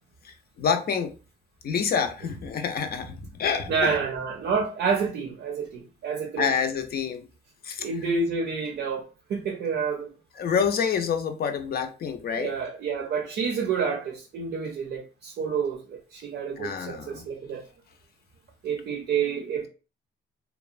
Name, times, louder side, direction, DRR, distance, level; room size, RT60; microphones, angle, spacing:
voice 1, 0.2-1.1 1.6-4.0 6.4-7.3 7.6-7.9 10.4-12.5 16.6-17.3, left 6 dB, 50° left, 0.5 m, -27 dB
voice 2, 3.7-6.5 7.8-10.1 12.4-17.7 18.6-19.7, right 5 dB, 65° right, 0.6 m, -29 dB
2.9 x 2.1 x 2.4 m
cardioid pair, 90°, 20 cm